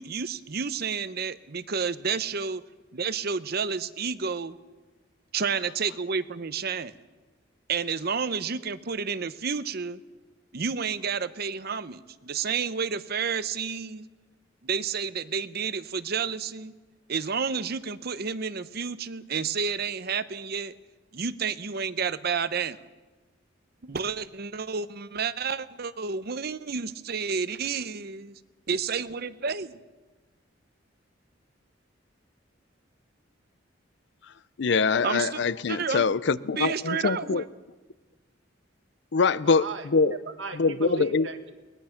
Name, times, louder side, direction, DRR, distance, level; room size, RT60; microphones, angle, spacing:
voice 1, 0.0-2.6 2.9-4.6 5.3-6.9 7.7-10.0 10.5-14.0 14.6-16.7 17.1-20.8 21.1-22.8 23.8-28.3 28.7-29.8 35.0-35.4 35.7-36.1 36.5-37.4, right 5 dB, 55° right, 0.8 m, -30 dB
voice 2, 34.6-37.4 39.1-40.2 40.6-41.3, left 4 dB, 65° left, 0.5 m, -24 dB
voice 3, 39.6-41.5, right 4 dB, 80° right, 1.8 m, -37 dB
22.0 x 20.0 x 5.9 m
head